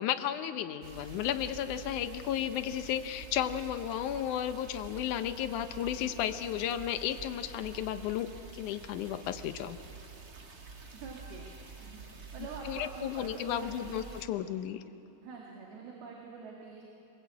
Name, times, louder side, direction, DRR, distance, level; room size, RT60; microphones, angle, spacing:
voice 1, 0.0-8.3 8.5-9.8 12.7-14.8, left 10 dB, 75° left, 9 dB, 1.9 m, -33 dB
sound 1, 0.8-14.2, right 4 dB, 40° right, 1.4 m, -48 dB
voice 2, 10.9-11.5 11.8-14.0 15.2-16.9, right 5 dB, 80° right, -2 dB, 4.1 m, -46 dB
25.5 x 20.5 x 8.5 m, 2.9 s
omnidirectional pair, 4.4 m